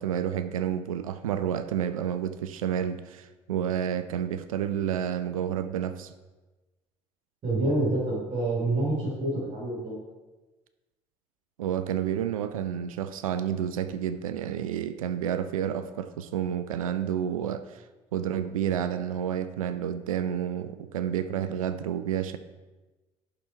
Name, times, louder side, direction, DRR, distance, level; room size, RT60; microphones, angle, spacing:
voice 1, 0.0-6.1 11.6-17.8 18.1-22.4, right 9 dB, 75° right, 11 dB, 0.4 m, -30 dB
voice 2, 7.4-10.0, right 2 dB, 40° right, -6 dB, 2.9 m, -27 dB
11.0 x 3.9 x 4.4 m, 1.2 s
figure-of-eight pair, 55°, 18 cm